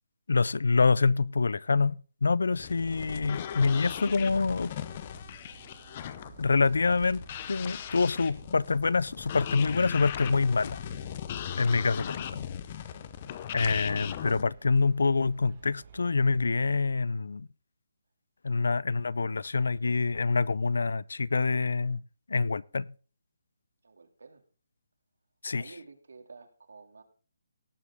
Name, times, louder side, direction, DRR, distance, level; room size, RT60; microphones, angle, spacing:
voice 1, 0.3-4.7 6.4-7.2 7.5-10.8 11.6-12.5 13.5-17.5 18.4-22.0 22.3-22.9 25.4-25.6, left 4 dB, 75° left, 0.4 m, -26 dB
sound 1, 2.5-14.4, left 10 dB, 25° left, 0.6 m, -39 dB
sound 2, 2.8-16.9, right 6 dB, 25° right, 1.4 m, -53 dB
voice 2, 23.8-24.4 25.5-27.0, right 4 dB, 85° right, 2.3 m, -50 dB
18.0 x 7.4 x 3.6 m
hypercardioid pair, 175°, 0 cm